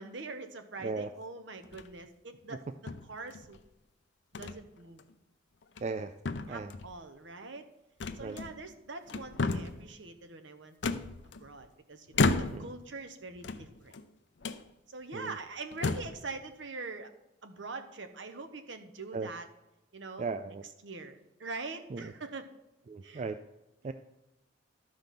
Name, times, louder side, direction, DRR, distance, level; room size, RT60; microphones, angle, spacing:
voice 1, 0.0-3.6 4.3-5.0 6.5-7.6 8.1-10.8 11.2-13.9 14.9-17.1 17.4-19.5 19.9-20.3 20.8-22.5 23.0-23.2, right 3 dB, 65° right, 8 dB, 1.0 m, -43 dB
sound 1, 1.6-2.1 2.9-3.6 4.3-4.6 5.0-5.1 5.6-6.0 6.2-7.0 8.0-8.7 9.1-9.8 10.8-11.6 12.1-12.8 13.3-14.0 14.4-14.6 15.2-15.3 15.7-16.2, left 3 dB, 60° left, 0.5 m, -33 dB
voice 2, 5.8-6.1 6.5-6.7 8.2-8.4 12.5-12.7 15.1-15.4 19.1-19.3 20.2-20.6 21.9-22.1 22.9-23.4 23.8-23.9, right 4 dB, 35° right, 10 dB, 0.3 m, -36 dB
12.0 x 5.2 x 5.8 m, 0.96 s
head